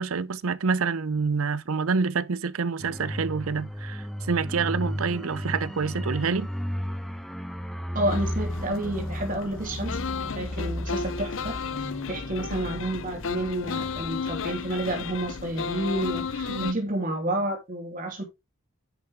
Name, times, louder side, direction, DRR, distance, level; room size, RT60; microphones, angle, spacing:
voice 1, 0.0-6.5 16.5-16.8, right 5 dB, 80° right, 0.6 m, -27 dB
sound 1, 2.8-15.2 15.5-15.6, equal, ahead, 1.0 m, -34 dB
voice 2, 7.9-10.0 10.3-18.2, right 1 dB, 40° right, 3.3 m, -30 dB
sound 2, 8.0-16.7, left 5 dB, 65° left, 0.6 m, -34 dB
10.5 x 6.5 x 3.5 m
head